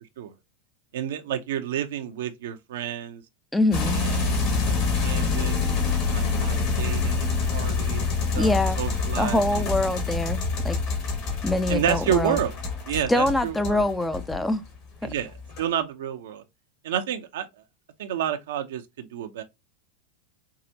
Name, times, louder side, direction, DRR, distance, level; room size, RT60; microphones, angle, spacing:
voice 1, 0.9-3.2 3.9-4.8 5.0-8.5 8.8-9.6 11.7-12.5 12.9-13.8 15.0-15.3 15.6-16.4 16.8-17.5 18.0-19.4, right 10 dB, 70° right, 0.6 m, -30 dB
voice 2, 3.5-3.9 8.4-8.8 9.2-10.8 11.4-12.4 13.1-14.6 15.0-15.1, left 2 dB, 10° left, 0.5 m, -24 dB
sound 1, 3.7-14.6 15.0-15.6, left 4 dB, 55° left, 1.8 m, -26 dB
4.7 x 2.4 x 2.7 m
hypercardioid pair, 90°, 0 cm